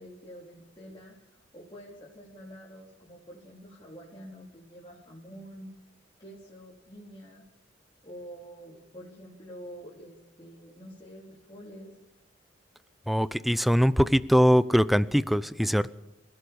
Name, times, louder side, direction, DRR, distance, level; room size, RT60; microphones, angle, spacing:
voice 1, 0.0-5.7 6.2-7.4 8.0-11.9, equal, 25° left, -5 dB, 4.0 m, -47 dB
voice 2, 13.1-15.9, equal, ahead, 16 dB, 0.7 m, -22 dB
26.5 x 16.5 x 7.1 m, 0.90 s
head